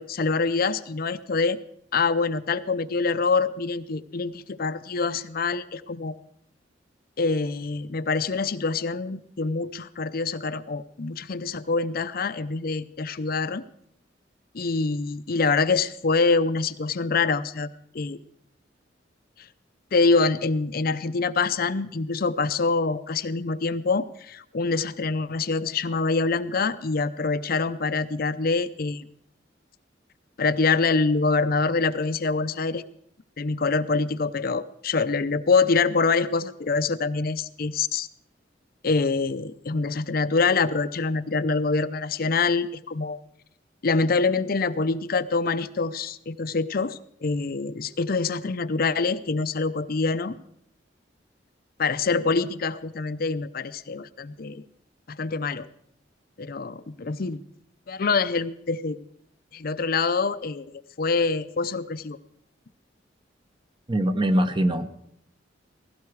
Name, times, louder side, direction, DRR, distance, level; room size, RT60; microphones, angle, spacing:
voice 1, 0.0-1.6 1.9-6.2 7.2-13.6 14.5-17.7 17.9-18.2 19.9-29.0 30.4-32.8 33.4-38.1 38.8-43.2 43.8-50.4 51.8-54.6 55.1-55.7 56.4-57.4 57.9-59.0 59.5-60.7 61.0-62.2, left 4 dB, 55° left, 12 dB, 0.6 m, -25 dB
voice 2, 63.9-64.9, right 1 dB, 25° right, 9 dB, 0.9 m, -22 dB
17.0 x 16.5 x 4.7 m, 0.72 s
head